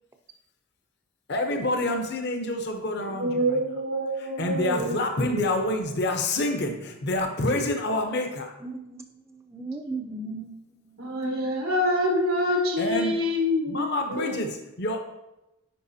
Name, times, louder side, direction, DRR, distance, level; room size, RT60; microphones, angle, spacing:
voice 1, 1.3-3.4 4.2-8.5 12.8-13.2 13.7-15.0, left 1 dB, 50° left, 4 dB, 0.8 m, -27 dB
voice 2, 3.0-6.0 11.0-14.3, left 1 dB, 90° right, 0 dB, 1.3 m, -27 dB
voice 3, 8.6-11.1, right 3 dB, 15° right, 6 dB, 0.5 m, -37 dB
10.0 x 4.8 x 2.8 m, 0.93 s
head